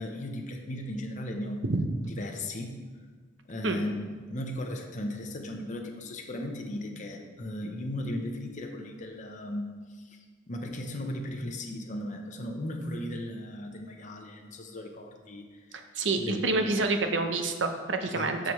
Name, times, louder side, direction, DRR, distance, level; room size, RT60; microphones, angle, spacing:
voice 1, 0.0-1.6 2.0-2.8 3.5-9.7 10.0-10.2 10.5-15.5 16.2-16.9 18.1-18.5, left 1 dB, 45° left, 2 dB, 0.8 m, -36 dB
voice 2, 15.7-18.5, right 3 dB, 85° right, 6 dB, 0.8 m, -28 dB
13.0 x 5.1 x 3.1 m, 1.5 s
head